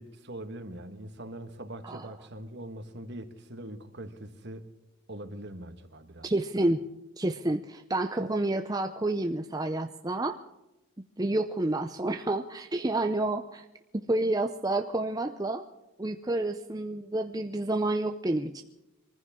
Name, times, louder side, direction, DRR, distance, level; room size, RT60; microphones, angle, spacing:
voice 1, 0.0-4.7 5.1-6.3, right 1 dB, 50° right, 9 dB, 1.5 m, -42 dB
voice 2, 6.2-6.8 7.2-10.4 11.2-13.7 13.9-15.7 16.0-18.6, right 2 dB, 15° right, 6 dB, 0.6 m, -29 dB
24.0 x 15.0 x 3.7 m, 0.98 s
head